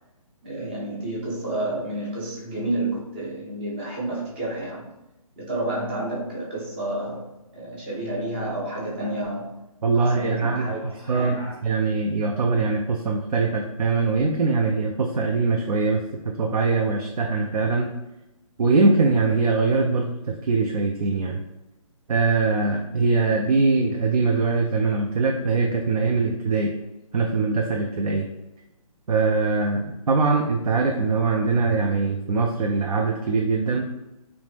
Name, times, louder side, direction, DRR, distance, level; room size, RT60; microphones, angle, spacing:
voice 1, 0.4-4.9 5.4-7.3 7.5-9.5 9.9-11.6, right 1 dB, 15° right, -4 dB, 0.4 m, -30 dB
voice 2, 9.8-10.7 11.1-11.4 11.6-17.9 18.6-21.4 22.1-26.7 27.1-28.3 29.1-33.9, right 4 dB, 85° right, 1 dB, 0.4 m, -22 dB
2.5 x 2.1 x 3.2 m, 0.96 s
hypercardioid pair, 155°, 19 cm